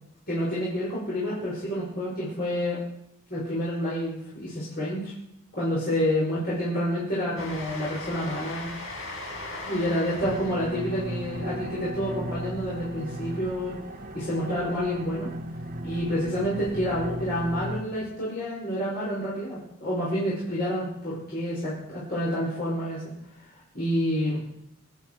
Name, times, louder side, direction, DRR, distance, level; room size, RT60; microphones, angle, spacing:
voice 1, 0.3-2.8 3.3-5.1 5.5-8.7 9.7-13.7 14.1-15.3 15.8-23.0 23.3-23.5 23.7-24.4, equal, 45° left, -7 dB, 5.3 m, -28 dB
Train, 7.4-13.5, left 2 dB, 80° left, 5.9 m, -40 dB
sound 1, 10.2-17.8, equal, 40° right, 1.2 m, -36 dB
25.0 x 9.2 x 4.6 m, 0.80 s
head